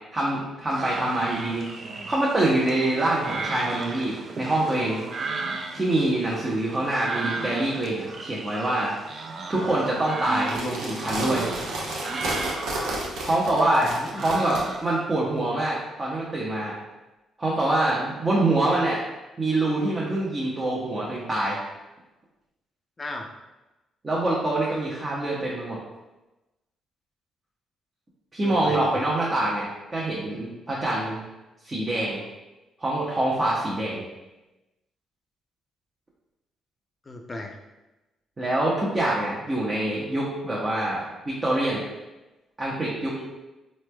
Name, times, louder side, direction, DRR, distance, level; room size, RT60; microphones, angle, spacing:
voice 1, 0.1-1.7 2.1-5.0 5.7-8.9 9.5-11.5 13.2-13.9 14.2-16.8 17.4-19.0 19.4-21.6 24.0-25.8 28.3-29.7 29.9-31.2 31.6-32.2 32.8-34.0 38.4-41.8 42.6-43.1, right 1 dB, 30° right, -6 dB, 0.8 m, -25 dB
sound 1, 0.7-15.0, right 3 dB, 50° right, 0.4 m, -35 dB
sound 2, 10.4-14.6, right 1 dB, 85° right, 0.7 m, -31 dB
voice 2, 13.7-14.2 23.0-23.3 28.4-29.0 37.0-37.6 43.2-43.3, left 2 dB, 25° left, 3 dB, 0.5 m, -37 dB
4.1 x 3.1 x 2.2 m, 1.0 s
cardioid pair, 90°, 0 cm